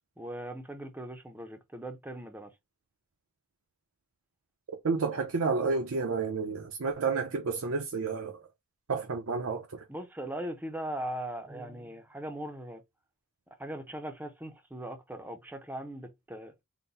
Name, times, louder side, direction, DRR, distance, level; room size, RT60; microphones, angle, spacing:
voice 1, 0.2-2.5 9.9-12.8 13.6-16.5, right 1 dB, 10° right, 0.6 m, -39 dB
voice 2, 4.8-8.4 8.9-9.8, right 4 dB, 65° right, 0.6 m, -30 dB
3.9 x 2.1 x 4.1 m
head